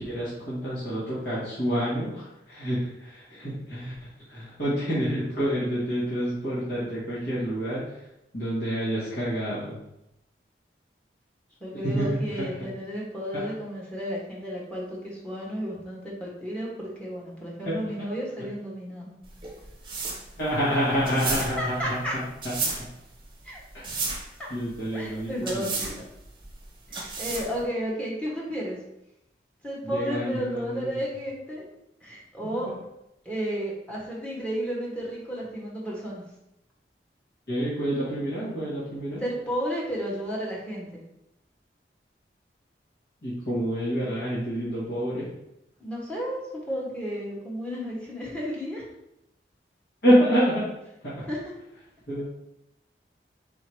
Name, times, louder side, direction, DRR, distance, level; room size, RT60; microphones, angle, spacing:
voice 1, 0.0-3.9 4.3-8.0 8.3-9.8 11.8-12.5 17.6-17.7 20.4-22.5 23.7-23.9 24.5-26.0 29.8-31.0 37.5-39.2 43.2-45.3 50.0-50.7 51.0-51.2 52.1-52.3, equal, 70° left, -11 dB, 1.6 m, -27 dB
voice 2, 11.6-19.1 20.7-21.0 21.6-22.1 23.4-23.6 24.4-24.5 24.9-25.9 26.9-28.8 29.6-31.6 32.0-32.7 33.2-36.2 39.2-41.0 45.8-48.8 51.2-51.4, equal, 5° left, -5 dB, 1.1 m, -32 dB
sound 1, 19.2-27.6, right 4 dB, 30° right, 0.8 m, -33 dB
4.2 x 2.8 x 4.5 m, 0.85 s
head